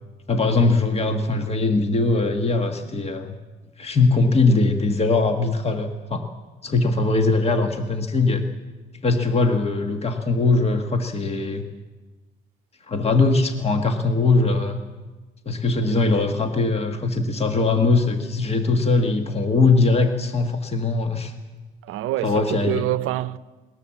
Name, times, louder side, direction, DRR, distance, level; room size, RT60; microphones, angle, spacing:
voice 1, 0.3-3.3 3.8-6.3 6.6-8.4 9.0-11.6 12.9-14.8 15.4-21.3 22.2-22.9, left 3 dB, 30° left, 1.6 m, -21 dB
voice 2, 21.8-23.4, right 14 dB, 80° right, 0.6 m, -26 dB
20.5 x 19.0 x 7.4 m
cardioid pair, 105°, 21 cm